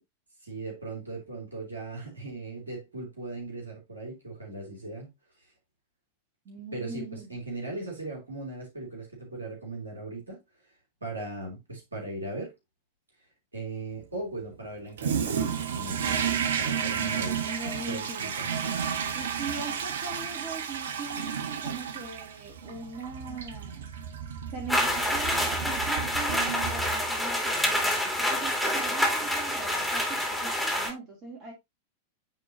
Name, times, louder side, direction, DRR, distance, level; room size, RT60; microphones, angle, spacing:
voice 1, 0.4-5.1 6.7-10.4 11.0-12.5 13.5-17.5 17.9-18.5, right 2 dB, 75° right, 3.2 m, -38 dB
voice 2, 6.4-7.4 17.4-18.4 19.1-23.9 24.5-31.5, right 3 dB, 35° right, 2.9 m, -41 dB
Toilet flush, 15.0-27.3, right 7 dB, 60° right, 0.8 m, -32 dB
sound 1, 24.7-30.9, left 1 dB, ahead, 2.3 m, -27 dB
9.1 x 3.8 x 3.0 m
figure-of-eight pair, 90°, 0 cm